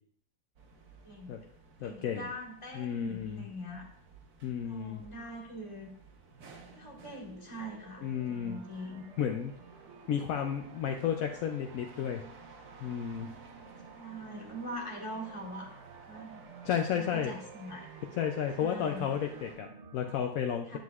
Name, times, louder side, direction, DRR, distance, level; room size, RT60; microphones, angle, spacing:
sound 1, 0.6-19.6, right 3 dB, 85° right, 1.7 m, -55 dB
voice 1, 1.0-1.5 1.8-3.9 4.6-5.9 6.7-9.0 13.9-15.7 16.0-16.4 16.9-17.9 18.6-19.1 20.7-20.8, equal, 20° left, -2 dB, 1.7 m, -43 dB
voice 2, 1.8-2.3 2.7-3.5 4.4-5.0 8.0-8.6 9.2-9.5 10.1-12.2 12.8-13.3 16.6-17.3 18.2-20.8, left 8 dB, 70° left, 4 dB, 1.0 m, -32 dB
sound 2, 6.2-20.1, right 5 dB, 60° right, 0.9 m, -53 dB
10.5 x 7.6 x 2.4 m, 0.63 s
omnidirectional pair, 1.6 m